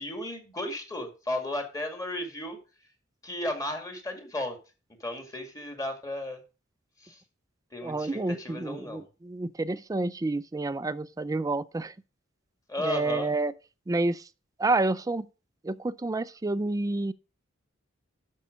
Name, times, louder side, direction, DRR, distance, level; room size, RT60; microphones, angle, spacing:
voice 1, 0.0-2.6 3.2-4.6 5.0-6.4 7.0-7.2 7.7-9.1 12.7-13.3, left 1 dB, 20° left, 2.1 m, -34 dB
voice 2, 7.8-11.9 12.8-13.5 13.9-14.3 14.6-15.3 15.6-17.1, right 2 dB, 15° right, 0.4 m, -29 dB
12.0 x 5.5 x 5.0 m
head